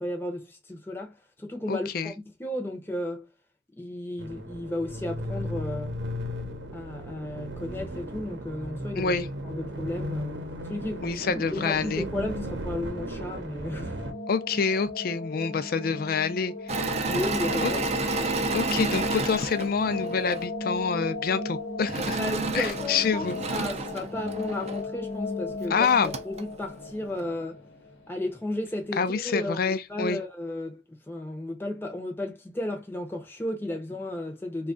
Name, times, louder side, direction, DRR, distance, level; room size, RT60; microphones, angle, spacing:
voice 1, 0.0-3.3 3.8-5.9 6.7-9.1 9.4-10.4 10.7-11.1 11.3-14.0 17.1-17.9 22.2-27.6 28.1-30.8 31.1-34.7, left 1 dB, 10° left, 0.6 m, -34 dB
voice 2, 1.7-2.1 9.0-9.3 11.0-12.0 14.3-16.5 17.1-17.2 17.6-17.7 18.5-22.2 22.5-23.4 25.7-26.2 29.0-30.2, left 5 dB, 50° left, 0.4 m, -27 dB
sound 1, 4.2-14.1, equal, 65° right, 0.8 m, -35 dB
sound 2, 13.5-28.4, left 3 dB, 80° left, 1.0 m, -35 dB
Engine / Mechanisms, 16.7-20.5 21.9-24.8 25.5-25.6 25.8-26.4, right 4 dB, 35° right, 0.5 m, -31 dB
3.1 x 2.3 x 3.7 m
head